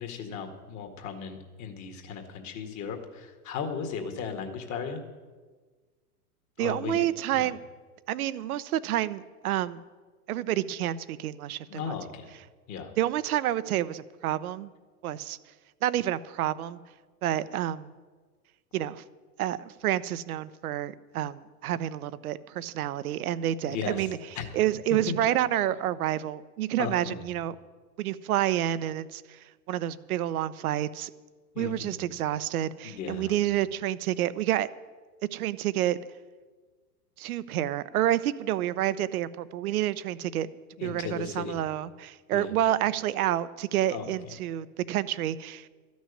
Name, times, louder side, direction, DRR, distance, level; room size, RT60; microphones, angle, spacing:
voice 1, 0.0-5.0 6.6-7.1 7.3-7.5 11.7-12.3 12.7-12.9 23.6-24.1 24.4-24.5 25.1-25.2 26.8-27.2 31.5-32.0 32.8-33.3 40.8-41.6 42.3-42.5 43.9-44.0, left 6 dB, 35° left, 5 dB, 1.9 m, -36 dB
voice 2, 6.6-7.6 8.1-9.8 10.3-11.9 13.0-14.7 15.0-15.4 15.8-16.8 17.2-17.9 18.7-19.0 19.4-24.2 24.5-27.5 28.0-29.4 29.7-31.1 31.6-34.7 35.3-36.0 37.2-40.5 40.8-45.7, right 12 dB, 65° right, 16 dB, 0.8 m, -29 dB
13.0 x 6.3 x 9.8 m, 1.4 s
hypercardioid pair, 105°, 47 cm